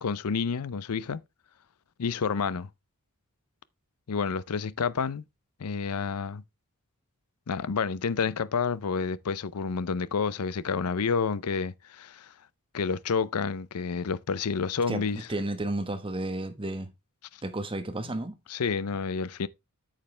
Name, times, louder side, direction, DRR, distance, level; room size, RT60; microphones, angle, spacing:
voice 1, 0.0-1.2 2.0-2.7 4.1-5.2 5.6-6.4 7.5-12.3 12.7-15.3 18.5-19.5, left 5 dB, 80° left, 0.6 m, -29 dB
voice 2, 15.3-16.9 17.4-18.4, right 2 dB, 25° right, 1.2 m, -32 dB
8.7 x 7.4 x 3.3 m
head